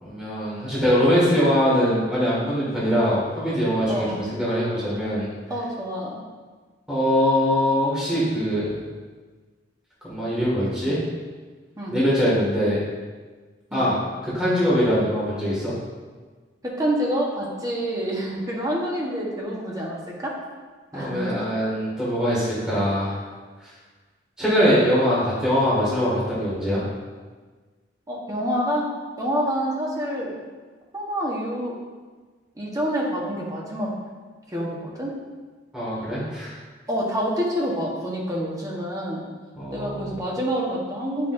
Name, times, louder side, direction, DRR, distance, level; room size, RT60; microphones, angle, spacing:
voice 1, 0.0-5.3 6.9-8.7 10.0-11.0 11.9-12.8 13.7-14.0 14.2-15.7 20.9-23.2 23.6-23.7 24.4-26.8 35.7-36.5 39.6-40.2, equal, 5° right, -9 dB, 2.1 m, -22 dB
voice 2, 3.9-4.2 5.5-6.2 11.8-12.0 13.7-13.9 16.6-20.4 20.9-21.5 28.1-28.9 29.2-30.4 30.9-31.7 32.6-33.9 34.5-35.2 36.9-39.2 39.7-41.3, equal, 20° right, -4 dB, 1.3 m, -27 dB
8.3 x 5.8 x 2.7 m, 1.4 s
head